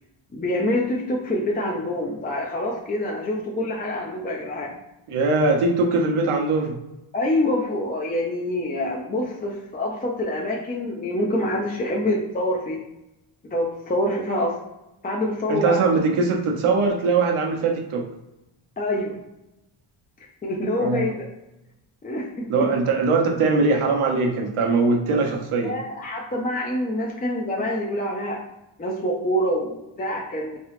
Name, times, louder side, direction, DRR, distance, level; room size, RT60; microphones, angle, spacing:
voice 1, 0.3-4.7 7.1-12.8 13.5-14.5 15.0-15.8 18.8-19.2 20.4-21.1 22.0-22.7 25.6-28.4 28.8-30.6, left 1 dB, 20° left, -1 dB, 0.3 m, -26 dB
voice 2, 5.1-6.7 15.5-18.1 20.8-21.1 22.5-25.7, right 3 dB, 85° right, 1 dB, 1.0 m, -21 dB
3.5 x 3.2 x 3.0 m, 0.91 s
wide cardioid pair, 180°, 49 cm